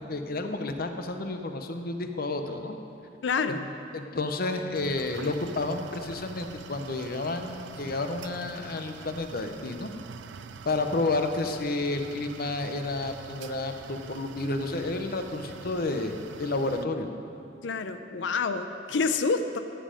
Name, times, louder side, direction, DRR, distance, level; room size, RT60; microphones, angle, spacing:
voice 1, 0.0-2.8 3.9-9.9 10.7-17.1, left 2 dB, 55° left, 6 dB, 0.8 m, -31 dB
voice 2, 3.2-3.7 17.6-19.6, left 4 dB, 85° left, 9 dB, 0.5 m, -28 dB
sound 1, 4.7-16.9, right 6 dB, 75° right, 0.4 m, -45 dB
14.0 x 7.7 x 5.1 m, 2.7 s
head